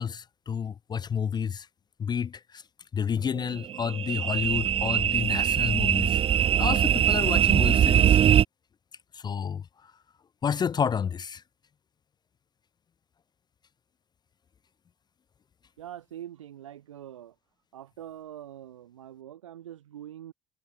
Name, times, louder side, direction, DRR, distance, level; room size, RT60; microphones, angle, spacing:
voice 1, 0.0-1.7 2.0-2.6 2.9-8.2 9.1-9.6 10.4-11.4, left 7 dB, 25° left, 0.4 m, -30 dB
sound 1, 3.4-8.4, right 9 dB, 35° right, 0.6 m, -22 dB
voice 2, 15.8-17.3 17.7-20.3, right 11 dB, 85° right, 6.3 m, -44 dB
hypercardioid pair, 60°, 16 cm